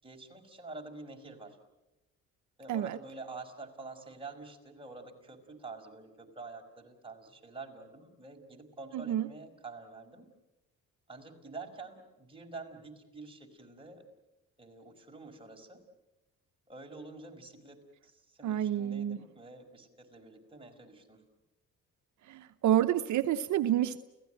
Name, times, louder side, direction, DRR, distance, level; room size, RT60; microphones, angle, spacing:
voice 1, 0.0-1.6 2.6-10.3 11.1-14.0 14.6-15.9 16.7-21.2, right 3 dB, 15° right, 1 dB, 5.1 m, -47 dB
voice 2, 8.9-9.3 18.4-19.2 22.3-24.0, right 11 dB, 75° right, 9 dB, 0.8 m, -29 dB
29.5 x 16.5 x 9.1 m, 1.0 s
cardioid pair, 90°, 30 cm